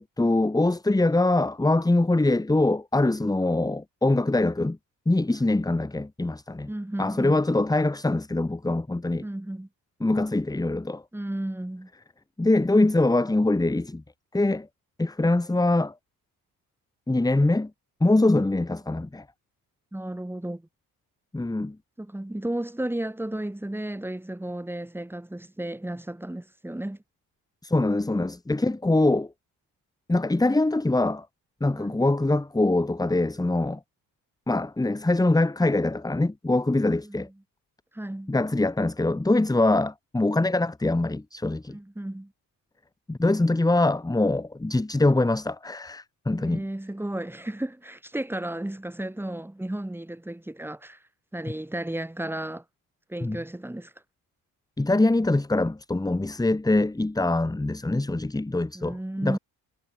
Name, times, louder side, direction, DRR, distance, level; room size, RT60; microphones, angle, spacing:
voice 1, 0.0-4.8 5.1-6.7 7.0-9.2 10.0-11.0 12.4-14.0 14.3-14.7 15.0-15.9 17.1-17.7 18.0-19.2 21.3-21.8 27.6-29.3 30.1-31.3 31.6-33.8 34.5-37.3 38.3-41.8 43.1-46.6 53.2-53.4 54.8-59.0 59.2-59.4, left 2 dB, 10° left, 1.9 m, -23 dB
voice 2, 6.7-7.4 9.2-9.7 11.1-11.9 19.9-20.7 22.0-27.0 31.7-32.1 37.0-37.3 37.9-38.3 41.7-42.3 46.3-51.0 51.3-52.6 53.1-53.9 58.7-59.4, right 1 dB, 5° right, 3.1 m, -33 dB
cardioid pair, 105°, 36 cm